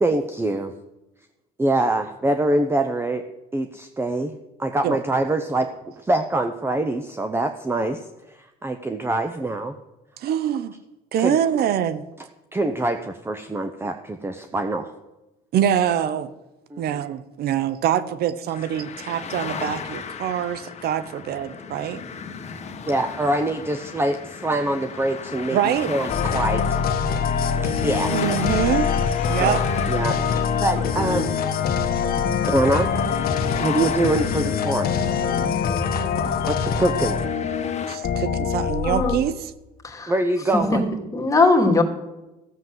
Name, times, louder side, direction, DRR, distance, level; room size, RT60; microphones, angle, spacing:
voice 1, 0.0-0.7 1.6-3.3 3.5-8.0 8.3-9.7 11.2-11.4 12.5-14.9 16.7-16.8 22.9-25.6 25.9-26.8 27.6-28.1 29.4-29.6 29.9-31.4 32.5-32.9 33.6-34.9 36.4-37.2 40.1-40.8, right 2 dB, 15° right, 8 dB, 0.8 m, -24 dB
voice 2, 10.2-10.7 11.1-12.0 15.5-16.3 16.8-22.0 25.5-25.9 28.1-28.9 29.3-29.6 37.9-39.5, right 10 dB, 70° right, 15 dB, 0.8 m, -24 dB
sound 1, 18.5-38.0, left 6 dB, 40° left, 1.7 m, -36 dB
sound 2, 26.1-39.2, left 6 dB, 60° left, 1.5 m, -24 dB
voice 3, 41.1-41.8, left 3 dB, 20° left, 2 dB, 2.5 m, -19 dB
15.0 x 7.4 x 7.8 m, 0.99 s
cardioid pair, 110°, 17 cm